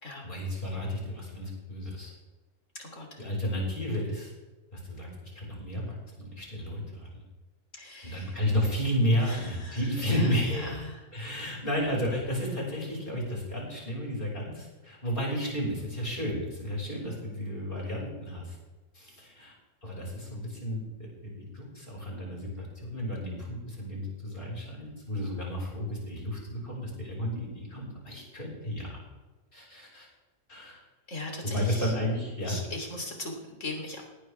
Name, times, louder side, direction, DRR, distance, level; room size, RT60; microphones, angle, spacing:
voice 1, 0.2-2.1 3.2-4.3 4.7-5.1 5.3-7.2 8.0-10.8 11.1-18.6 18.9-19.5 19.8-29.0 29.5-30.1 30.5-30.8 31.4-32.6, equal, 40° left, -3 dB, 6.2 m, -32 dB
voice 2, 2.8-3.2 7.8-8.3 9.2-11.0 11.4-11.5 31.1-31.9 32.5-34.0, left 2 dB, 65° left, 1 dB, 3.9 m, -39 dB
19.0 x 18.5 x 3.6 m, 1.2 s
omnidirectional pair, 1.4 m